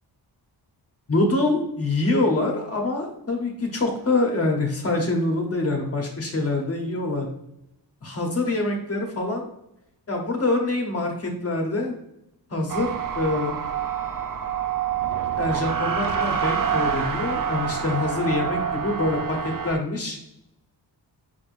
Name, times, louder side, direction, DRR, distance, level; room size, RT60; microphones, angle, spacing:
voice 1, 1.1-7.3 8.0-9.4 10.1-11.9 12.5-12.9 13.1-13.6 15.4-20.2, left 2 dB, 35° left, 1 dB, 0.9 m, -25 dB
sound 1, 12.7-19.8, right 8 dB, 50° right, 0.5 m, -27 dB
5.5 x 3.5 x 2.5 m, 0.82 s
wide cardioid pair, 130°, 42 cm